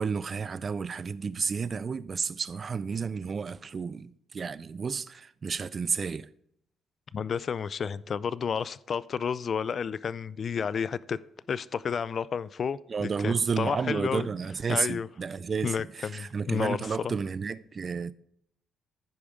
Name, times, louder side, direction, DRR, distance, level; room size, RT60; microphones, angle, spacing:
voice 1, 0.0-6.3 12.9-18.1, right 5 dB, 40° right, 0.4 m, -31 dB
voice 2, 7.1-11.2 11.5-14.3 14.7-15.1 15.6-17.1, left 6 dB, 50° left, 0.3 m, -31 dB
14.5 x 5.0 x 3.6 m
cardioid pair, 90°, 0 cm